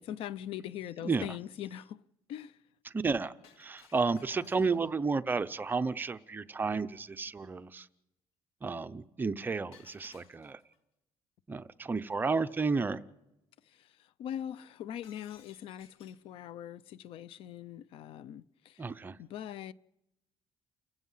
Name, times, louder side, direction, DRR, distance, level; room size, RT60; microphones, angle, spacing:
voice 1, 0.0-2.6 13.6-18.9 19.2-19.7, left 10 dB, 70° left, 0.6 m, -42 dB
voice 2, 2.9-7.9 8.6-10.6 11.5-13.0 18.8-19.2, right 4 dB, 20° right, 0.7 m, -32 dB
Shatter, 3.4-5.1 9.7-10.8 15.0-16.3, left 7 dB, 85° left, 2.6 m, -60 dB
30.0 x 16.0 x 5.7 m
cardioid pair, 145°, 10 cm